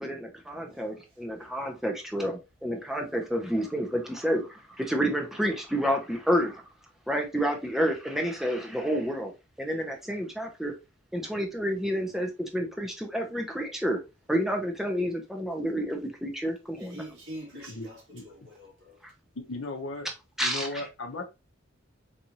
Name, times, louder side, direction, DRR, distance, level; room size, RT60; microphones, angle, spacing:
voice 1, 0.0-6.6 7.1-9.3 9.6-10.7 11.1-14.0 14.3-17.0 20.4-20.8, equal, ahead, 0.7 m, -29 dB
voice 2, 16.8-19.0, equal, 65° right, 2.2 m, -45 dB
voice 3, 17.7-18.2 19.4-20.1 20.4-21.2, left 2 dB, 75° left, 0.7 m, -36 dB
4.1 x 2.6 x 2.9 m
head